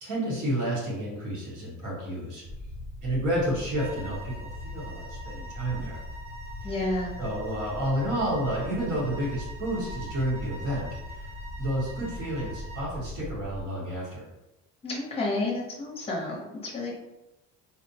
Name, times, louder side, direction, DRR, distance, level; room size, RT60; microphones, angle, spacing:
voice 1, 0.0-2.4 3.0-6.0 6.6-6.9 7.2-11.3 11.6-14.3, right 1 dB, 65° right, -5 dB, 1.2 m, -30 dB
sound 1, 2.4-13.6, left 2 dB, 85° right, 1.4 m, -40 dB
sound 2, 3.8-12.9, right 2 dB, 20° right, 0.5 m, -45 dB
voice 2, 6.6-7.1 14.8-16.9, left 2 dB, 15° left, -3 dB, 0.7 m, -30 dB
4.0 x 2.1 x 2.7 m, 0.95 s
cardioid pair, 180°, 33 cm